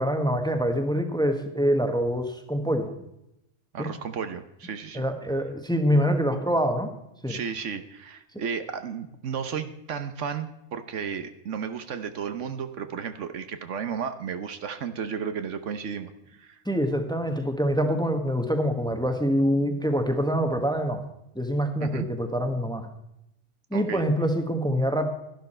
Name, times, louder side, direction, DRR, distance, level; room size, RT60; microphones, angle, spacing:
voice 1, 0.0-2.9 3.8-3.9 4.9-6.9 7.2-7.4 16.6-21.0 21.3-22.9 23.7-25.1, equal, 5° left, 6 dB, 1.2 m, -25 dB
voice 2, 3.7-5.0 7.3-16.6 21.8-22.1 23.7-24.0, right 7 dB, 70° right, 9 dB, 1.2 m, -33 dB
12.0 x 11.5 x 4.4 m, 0.83 s
omnidirectional pair, 1.3 m